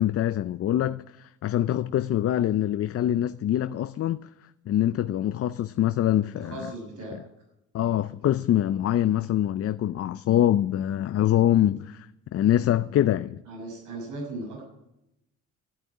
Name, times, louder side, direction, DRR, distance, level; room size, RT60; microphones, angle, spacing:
voice 1, 0.0-4.3 4.7-6.5 7.7-13.4, left 12 dB, 50° left, 0.5 m, -24 dB
voice 2, 6.4-7.2 13.5-14.6, right 2 dB, 85° right, 6.4 m, -37 dB
12.5 x 9.1 x 9.8 m
cardioid pair, 90°, 30 cm